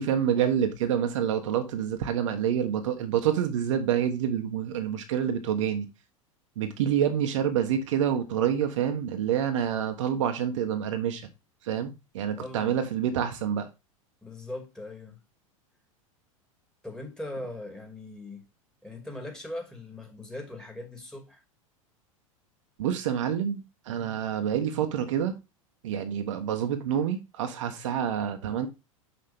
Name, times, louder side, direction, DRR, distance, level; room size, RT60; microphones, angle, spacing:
voice 1, 0.0-5.9 6.6-11.2 11.6-13.7 22.8-25.3 25.8-28.7, right 9 dB, 60° right, 1.2 m, -27 dB
voice 2, 12.3-12.8 14.2-15.2 16.8-18.4 18.8-21.4, left 1 dB, 5° left, 2.5 m, -40 dB
6.5 x 6.0 x 3.5 m
figure-of-eight pair, 85°, 18 cm